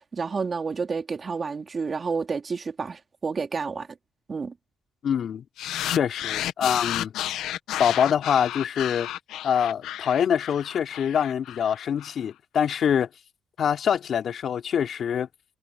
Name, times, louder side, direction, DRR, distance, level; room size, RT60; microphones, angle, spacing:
voice 1, 0.0-3.9 4.3-4.5, right 5 dB, 35° right, 3.8 m, -30 dB
voice 2, 5.0-5.4 5.9-7.1 7.8-9.1 9.4-13.1 13.6-15.3, left 8 dB, 60° left, 3.3 m, -24 dB
sound 1, 5.6-12.1, left 12 dB, 85° left, 1.4 m, -32 dB
cardioid pair, 90°, 0 cm